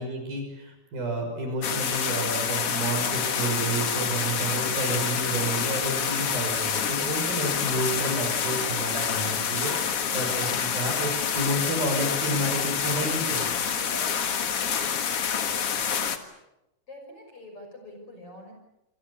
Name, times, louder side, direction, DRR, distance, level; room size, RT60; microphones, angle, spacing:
voice 1, 0.0-9.7 10.1-13.5, right 2 dB, 50° right, 4 dB, 7.6 m, -30 dB
sound 1, 1.6-16.2, left 7 dB, 80° left, 1.3 m, -27 dB
sound 2, 3.4-15.3, left 1 dB, 50° left, 5.2 m, -48 dB
voice 2, 9.6-10.2 13.9-14.1 16.9-18.5, left 1 dB, 30° left, 3 dB, 6.5 m, -44 dB
29.0 x 25.5 x 7.1 m, 0.91 s
omnidirectional pair, 5.6 m